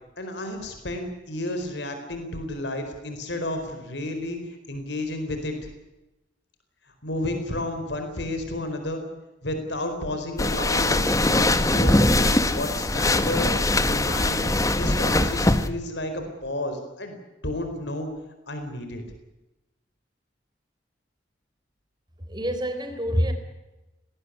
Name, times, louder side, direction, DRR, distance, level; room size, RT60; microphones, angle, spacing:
voice 1, 0.2-4.4 4.7-5.5 7.0-9.0 9.4-13.5 13.9-14.5 14.8-17.2 17.4-18.1 18.5-19.0, left 1 dB, 75° left, 6 dB, 4.5 m, -31 dB
sound 1, 10.4-15.7, left 2 dB, 20° left, 1.2 m, -21 dB
voice 2, 22.3-23.3, equal, 25° right, 6 dB, 4.3 m, -26 dB
20.0 x 18.0 x 9.8 m, 1.0 s
head